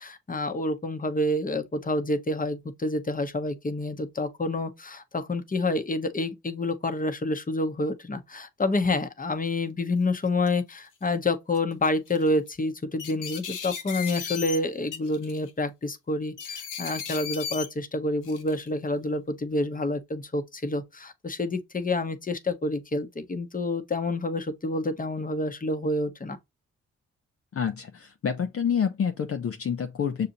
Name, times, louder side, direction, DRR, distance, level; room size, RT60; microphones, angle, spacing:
voice 1, 0.0-26.4, left 2 dB, 30° left, 0.9 m, -28 dB
sound 1, 9.5-9.6 10.2-10.7 11.5-11.7 12.1-12.3 13.0-14.6 14.9-15.5 16.4-17.7 18.2-18.7, left 7 dB, 90° left, 0.8 m, -36 dB
voice 2, 27.5-30.3, left 7 dB, 50° left, 0.6 m, -28 dB
6.6 x 2.6 x 2.7 m
supercardioid pair, 45°, 30 cm